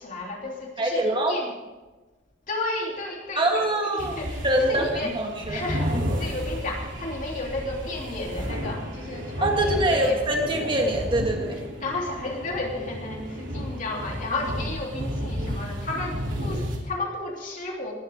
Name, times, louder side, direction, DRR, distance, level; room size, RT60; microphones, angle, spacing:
voice 1, 0.0-1.5 2.5-3.7 3.9-5.1 5.5-10.2 11.8-17.9, left 2 dB, 45° left, -1 dB, 3.2 m, -33 dB
voice 2, 0.8-1.4 3.4-4.2 4.4-4.9 5.1-5.6 5.9-6.1 9.4-11.6, right 1 dB, 25° right, 1 dB, 2.0 m, -24 dB
sound 1, 4.0-16.8, equal, 85° right, 3.1 m, -32 dB
20.0 x 12.5 x 3.6 m, 1.2 s
head